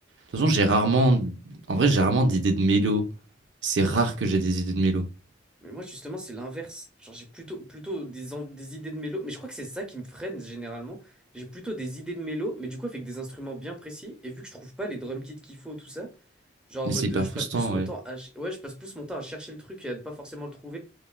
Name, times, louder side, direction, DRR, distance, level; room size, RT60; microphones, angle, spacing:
voice 1, 0.3-3.1 3.6-5.0 16.9-17.9, right 2 dB, 90° right, 0.5 m, -23 dB
voice 2, 5.6-16.1 16.7-20.8, right 1 dB, 5° right, 0.6 m, -36 dB
3.1 x 2.3 x 2.2 m
head